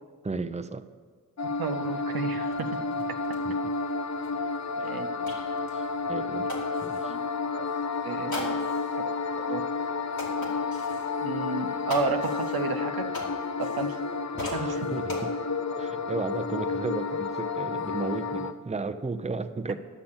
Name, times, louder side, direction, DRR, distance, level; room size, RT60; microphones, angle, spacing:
voice 1, 0.2-0.9 3.5-3.6 5.7-6.5 6.8-7.2 14.3-15.3 15.8-19.7, right 3 dB, 20° right, 9 dB, 0.6 m, -34 dB
sound 1, 1.4-18.5, left 4 dB, 50° left, 0.7 m, -31 dB
voice 2, 1.6-2.8 4.8-5.1 7.0-7.2 7.5-7.7 8.0-8.6 8.9-9.0 9.4-9.6 11.2-13.1 13.6-14.0 14.4-14.9, right 4 dB, 90° right, 6 dB, 0.8 m, -32 dB
sound 2, 2.1-2.2 2.5-7.2 8.3-9.0 9.5-9.6 10.1-11.1 11.9-14.1 14.4-15.2, left 2 dB, 85° left, 2.5 m, -40 dB
12.0 x 6.6 x 7.2 m, 1.5 s
cardioid pair, 45°, 35 cm